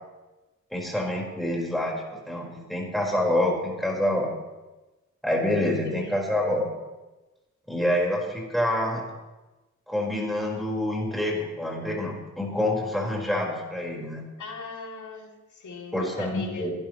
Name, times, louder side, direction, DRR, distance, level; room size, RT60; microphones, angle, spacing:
voice 1, 0.7-4.3 5.2-6.7 7.7-9.0 9.9-14.2 15.9-16.7, left 1 dB, ahead, -3 dB, 4.8 m, -27 dB
voice 2, 5.8-6.3 14.4-16.7, left 3 dB, 75° left, 0 dB, 2.9 m, -39 dB
23.5 x 12.5 x 3.2 m, 1.1 s
wide cardioid pair, 110°, 30 cm